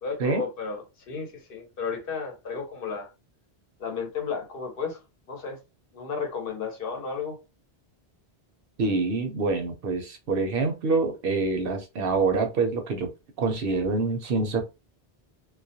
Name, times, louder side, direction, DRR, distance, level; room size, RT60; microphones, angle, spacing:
voice 1, 0.0-3.1 3.8-5.0 5.3-5.6 5.9-7.4, left 5 dB, 65° left, 0.9 m, -33 dB
voice 2, 8.8-13.1 13.4-14.6, right 3 dB, 65° right, 0.7 m, -26 dB
2.3 x 2.1 x 2.6 m
omnidirectional pair, 1.0 m